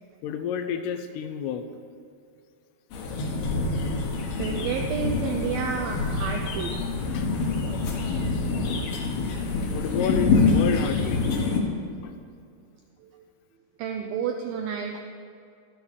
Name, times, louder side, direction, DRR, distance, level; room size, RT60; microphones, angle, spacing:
voice 1, 0.2-1.6 7.1-7.3 9.7-11.2 12.0-12.1, left 7 dB, 80° left, 8 dB, 2.6 m, -30 dB
sound 1, 2.9-11.6, left 4 dB, 65° left, 2.6 m, -26 dB
voice 2, 4.4-6.8 8.6-9.2 13.0-13.2 13.8-15.0, right 7 dB, 85° right, 3 dB, 2.1 m, -31 dB
12.5 x 9.7 x 4.9 m, 2.4 s
omnidirectional pair, 5.0 m